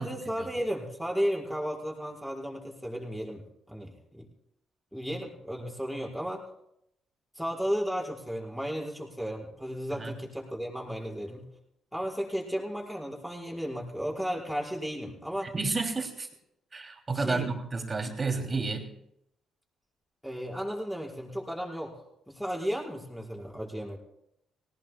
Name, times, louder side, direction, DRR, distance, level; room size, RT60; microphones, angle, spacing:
voice 1, 0.0-4.3 4.9-6.4 7.4-11.5 11.9-15.5 17.1-17.5 20.2-22.0 22.3-24.0, equal, ahead, -3 dB, 5.2 m, -34 dB
voice 2, 15.4-16.3 16.7-18.9, right 3 dB, 30° right, 3 dB, 2.7 m, -31 dB
19.5 x 18.5 x 2.2 m, 0.77 s
hypercardioid pair, 45°, 0 cm